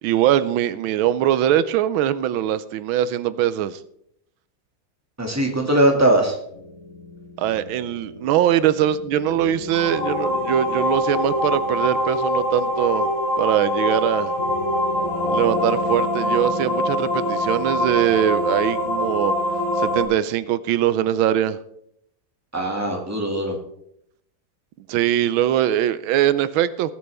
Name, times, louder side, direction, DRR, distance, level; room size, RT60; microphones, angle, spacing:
voice 1, 0.0-3.8 7.4-13.1 13.4-14.4 15.3-19.3 19.8-21.6 24.9-26.9, right 11 dB, 90° right, 15 dB, 1.4 m, -21 dB
voice 2, 5.2-6.4 22.5-23.6, right 1 dB, 10° right, 2 dB, 2.0 m, -20 dB
sound 1, 6.5-20.0, left 1 dB, 30° left, 3.9 m, -24 dB
20.0 x 8.0 x 3.4 m, 0.73 s
omnidirectional pair, 2.2 m